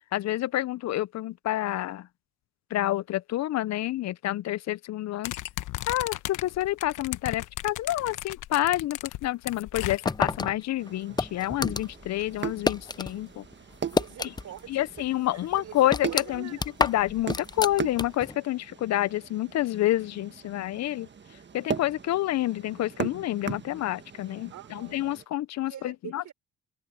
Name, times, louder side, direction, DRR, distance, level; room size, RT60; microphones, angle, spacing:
voice 1, 0.1-2.1 2.7-5.3 5.9-13.4 14.7-16.5 16.8-21.1 21.5-26.3, left 14 dB, 60° left, 0.5 m, -28 dB
sound 1, 5.2-10.4, left 15 dB, 90° left, 1.2 m, -36 dB
sound 2, 10.0-13.1 13.4-14.7 15.0-15.1 15.5-18.3, left 3 dB, 15° left, 0.5 m, -29 dB
sound 3, 10.8-25.3, right 7 dB, 35° right, 1.5 m, -39 dB
voice 2, 13.9-14.9 15.3-16.7 24.5-25.0 25.6-26.3, right 11 dB, 70° right, 4.4 m, -45 dB
open air
cardioid pair, 90°, 30 cm